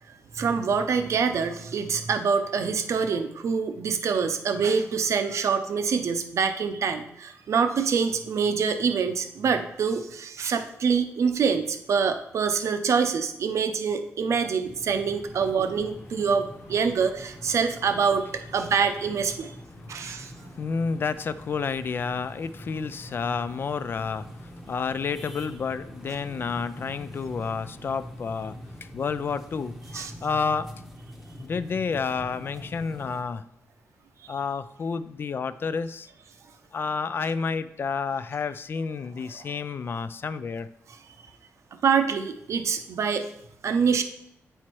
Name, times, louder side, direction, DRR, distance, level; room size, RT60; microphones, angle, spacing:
voice 1, 0.3-19.5 19.9-20.3 29.9-30.1 41.8-43.3 43.6-44.0, right 6 dB, 60° right, 0.7 m, -25 dB
sound 1, 14.6-33.2, equal, ahead, 0.9 m, -44 dB
voice 2, 19.7-30.7 31.4-33.4 34.3-36.1 36.7-40.7, left 5 dB, 40° left, 0.3 m, -30 dB
8.5 x 4.4 x 4.6 m
wide cardioid pair, 140°, 6 cm